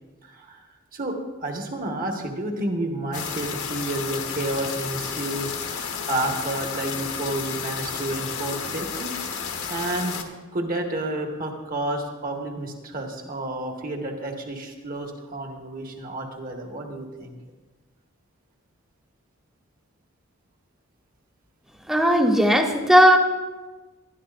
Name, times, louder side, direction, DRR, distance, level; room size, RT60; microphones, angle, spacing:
voice 1, 0.2-9.1 9.7-10.2 10.5-17.4, right 1 dB, 40° right, 2 dB, 1.6 m, -30 dB
sound 1, 3.1-10.2, left 6 dB, 75° left, 1.3 m, -32 dB
voice 2, 21.9-23.2, equal, ahead, 2 dB, 1.0 m, -16 dB
20.0 x 13.0 x 2.6 m, 1.3 s
head